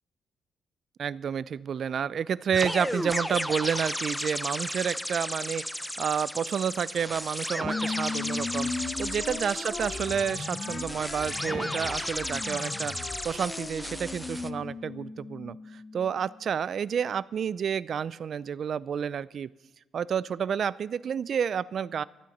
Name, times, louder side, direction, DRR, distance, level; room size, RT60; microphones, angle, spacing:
voice 1, 1.0-8.7 9.0-19.5 19.9-22.0, right 7 dB, 55° right, 19 dB, 0.4 m, -30 dB
sound 1, 2.5-14.5, equal, 5° left, 0.7 m, -34 dB
sound 2, 7.6-16.4, left 4 dB, 40° left, 1.6 m, -37 dB
25.0 x 9.3 x 4.2 m, 1.1 s
cardioid pair, 90°, 0 cm